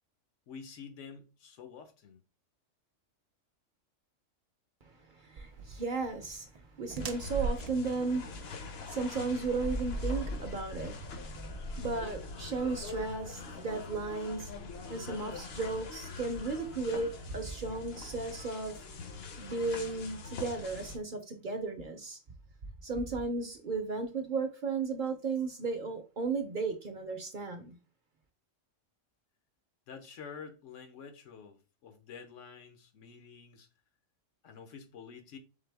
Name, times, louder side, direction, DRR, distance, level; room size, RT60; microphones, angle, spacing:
voice 1, 0.5-2.2 29.9-33.7 34.4-35.4, left 6 dB, 80° left, 1.1 m, -48 dB
voice 2, 5.1-6.5 6.8-14.5 14.9-18.8 19.4-22.2 22.8-27.8, right 4 dB, 50° right, 0.7 m, -35 dB
sound 1, 5.4-11.5, right 4 dB, 70° right, 0.3 m, -41 dB
sound 2, 7.0-21.0, left 2 dB, 60° left, 0.9 m, -42 dB
4.0 x 3.5 x 3.4 m
omnidirectional pair, 1.3 m